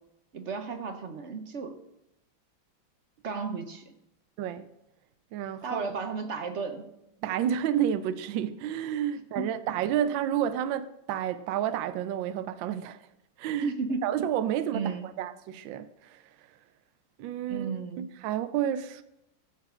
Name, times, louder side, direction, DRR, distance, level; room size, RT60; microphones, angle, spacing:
voice 1, 0.3-1.8 3.2-3.9 5.6-6.8 9.4-9.5 13.6-14.1 14.7-15.1 17.5-18.1, right 4 dB, 55° right, 0.8 m, -33 dB
voice 2, 4.4-4.7 5.3-5.8 7.2-13.1 13.4-13.7 14.0-16.6 17.2-19.0, right 10 dB, 75° right, 1.3 m, -30 dB
14.0 x 4.7 x 6.8 m
omnidirectional pair, 2.2 m